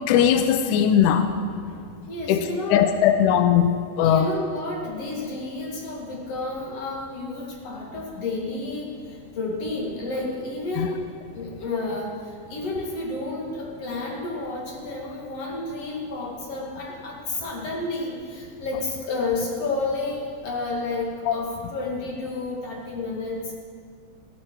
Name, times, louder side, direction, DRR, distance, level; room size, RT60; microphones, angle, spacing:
voice 1, 0.1-1.3 2.3-4.3 10.8-10.9 21.3-21.4, left 9 dB, 80° left, 8 dB, 1.9 m, -19 dB
voice 2, 2.1-2.9 4.0-11.1 11.3-23.6, left 2 dB, 50° left, -2 dB, 2.7 m, -31 dB
16.0 x 11.0 x 4.5 m, 2.2 s
omnidirectional pair, 4.0 m